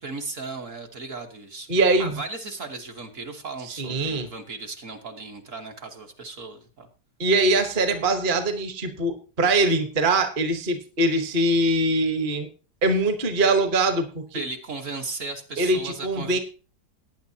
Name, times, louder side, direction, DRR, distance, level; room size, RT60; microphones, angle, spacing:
voice 1, 0.0-1.7 2.0-6.9 14.3-16.4, right 3 dB, 50° right, 3 dB, 1.5 m, -36 dB
voice 2, 1.7-2.2 3.7-4.3 7.2-12.5 12.8-14.4 15.6-16.4, right 2 dB, 35° right, 7 dB, 1.2 m, -22 dB
18.5 x 9.4 x 2.8 m, 0.34 s
omnidirectional pair, 1.8 m